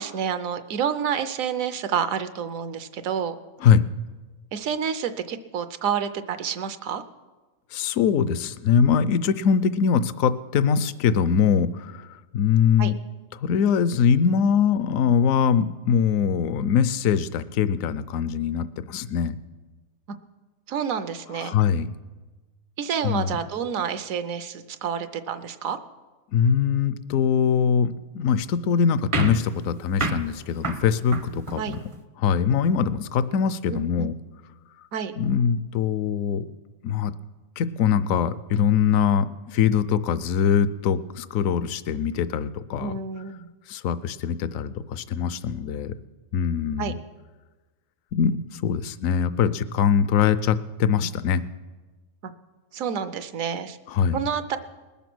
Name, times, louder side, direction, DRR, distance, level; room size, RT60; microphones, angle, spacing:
voice 1, 0.0-3.4 4.5-7.0 12.8-12.9 20.7-21.5 22.8-25.8 31.6-31.8 33.7-34.1 34.9-35.1 42.8-43.5 46.8-46.9 52.2-52.3 52.7-53.8 54.1-54.6, right 7 dB, 70° right, 11 dB, 1.1 m, -29 dB
voice 2, 7.7-12.1 12.3-13.0 13.4-19.4 21.4-21.9 23.0-23.4 26.3-31.8 32.2-34.1 35.2-36.5 36.8-37.1 37.6-42.9 43.7-45.9 46.3-47.0 48.1-51.4 53.9-54.2, left 7 dB, 70° left, 15 dB, 1.0 m, -22 dB
sound 1, 29.1-32.0, right 3 dB, 35° right, 0.5 m, -30 dB
20.0 x 7.1 x 6.1 m, 1.2 s
omnidirectional pair, 1.5 m